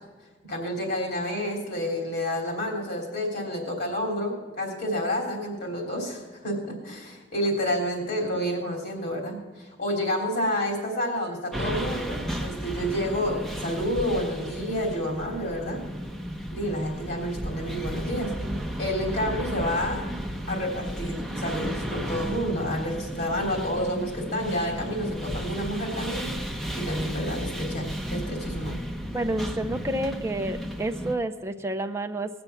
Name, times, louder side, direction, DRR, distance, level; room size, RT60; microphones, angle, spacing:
voice 1, 0.4-15.8 16.5-18.3 18.8-20.0 20.5-26.3 26.8-28.8, equal, 55° left, 1 dB, 3.4 m, -29 dB
sound 1, 11.5-31.1, equal, ahead, 0.9 m, -33 dB
voice 2, 29.1-32.3, right 1 dB, 15° right, 5 dB, 0.5 m, -29 dB
19.0 x 6.9 x 7.1 m, 1.4 s
head